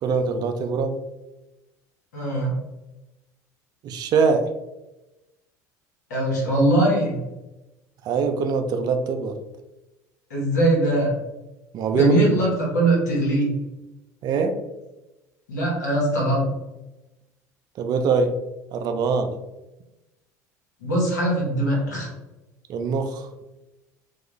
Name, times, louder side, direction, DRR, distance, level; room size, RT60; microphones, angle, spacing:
voice 1, 0.0-1.0 3.8-4.4 8.0-9.4 11.7-12.4 14.2-14.5 17.8-18.3 18.7-19.4 22.7-23.3, right 5 dB, 50° right, 6 dB, 0.4 m, -23 dB
voice 2, 2.1-2.5 6.1-7.2 10.3-11.1 11.9-13.5 15.5-16.5 20.8-22.1, right 1 dB, 85° left, -3 dB, 1.0 m, -21 dB
2.3 x 2.2 x 3.0 m, 1.0 s
hypercardioid pair, 70°, 9 cm